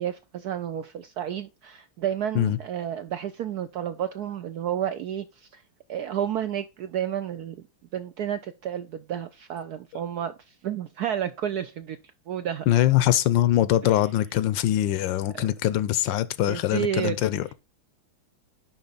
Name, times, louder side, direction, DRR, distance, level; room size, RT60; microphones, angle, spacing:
voice 1, 0.0-5.6 5.9-7.6 7.9-10.3 10.6-12.0 12.3-12.7 13.8-14.0 15.3-15.5 16.5-17.2, right 10 dB, 75° right, 0.9 m, -31 dB
voice 2, 12.7-17.5, left 12 dB, 75° left, 1.3 m, -23 dB
10.5 x 3.9 x 3.9 m
omnidirectional pair, 2.2 m